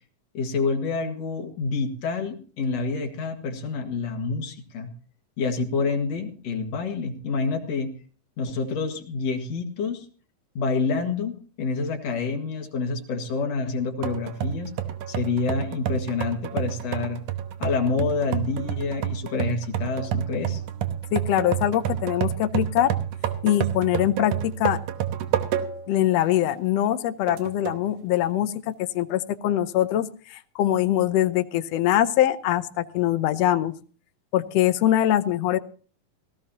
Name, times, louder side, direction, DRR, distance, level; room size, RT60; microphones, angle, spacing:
voice 1, 0.3-4.9 5.4-7.9 8.4-10.1 10.5-14.7 15.1-17.2 17.6-20.6, left 4 dB, 55° left, 5 dB, 2.8 m, -28 dB
sound 1, 14.0-26.0 26.4-26.5 27.3-27.9, right 10 dB, 70° right, 2.3 m, -29 dB
voice 2, 21.1-22.9 23.4-24.8 25.9-33.7 34.3-35.6, left 12 dB, 80° left, 11 dB, 1.4 m, -23 dB
18.5 x 15.5 x 2.9 m, 0.40 s
omnidirectional pair, 3.8 m